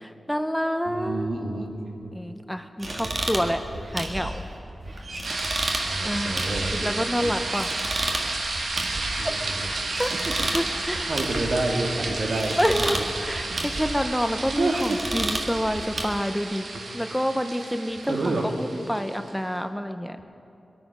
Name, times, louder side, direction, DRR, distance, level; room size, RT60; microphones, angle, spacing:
voice 1, 0.0-1.3 2.1-3.6 3.9-4.4 6.0-6.4 6.7-7.8 8.1-8.4 9.2-11.1 11.4-11.6 12.6-20.2, equal, ahead, 8 dB, 0.6 m, -28 dB
voice 2, 0.9-2.1 2.9-3.8 5.8-7.3 9.2-9.7 10.2-10.5 11.1-13.0 14.6-15.0 18.1-18.5, right 2 dB, 65° right, 2 dB, 1.8 m, -29 dB
sound 1, 2.8-16.0, right 1 dB, 45° right, 1.7 m, -33 dB
sound 2, 5.2-19.3, right 2 dB, 85° right, 1.6 m, -32 dB
22.5 x 9.1 x 6.0 m, 2.9 s
wide cardioid pair, 100°, 0 cm